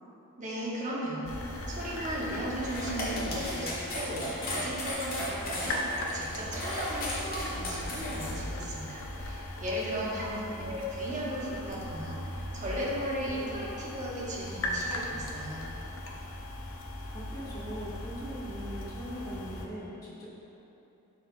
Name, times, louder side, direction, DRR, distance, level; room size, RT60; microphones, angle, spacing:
voice 1, 0.4-5.8 6.1-10.3 10.7-15.6, equal, 35° right, -5 dB, 1.1 m, -36 dB
sound 1, 1.2-19.7, left 1 dB, 60° left, 0.7 m, -39 dB
sound 2, 2.6-8.3, left 1 dB, 40° left, 1.5 m, -36 dB
voice 2, 10.0-10.8 17.1-20.3, equal, 15° left, -9 dB, 1.5 m, -41 dB
11.5 x 4.2 x 2.3 m, 2.9 s
head